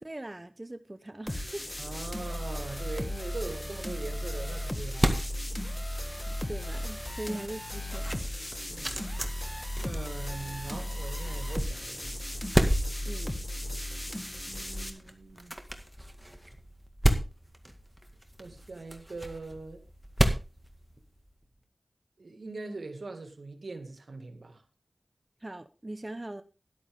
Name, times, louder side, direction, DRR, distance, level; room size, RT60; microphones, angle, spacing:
voice 1, 0.0-1.8 6.2-8.3 13.0-13.3 25.4-26.4, right 1 dB, 35° right, 0.9 m, -41 dB
sound 1, 1.3-14.9, left 1 dB, 25° left, 2.0 m, -36 dB
voice 2, 1.8-5.2 7.3-7.4 8.7-9.0 9.8-12.4 14.5-15.5 18.4-19.8 22.2-24.6, right 3 dB, 85° right, 2.0 m, -41 dB
sound 2, 4.0-21.5, equal, 10° right, 1.9 m, -34 dB
12.5 x 11.5 x 3.6 m
wide cardioid pair, 40°, 0 cm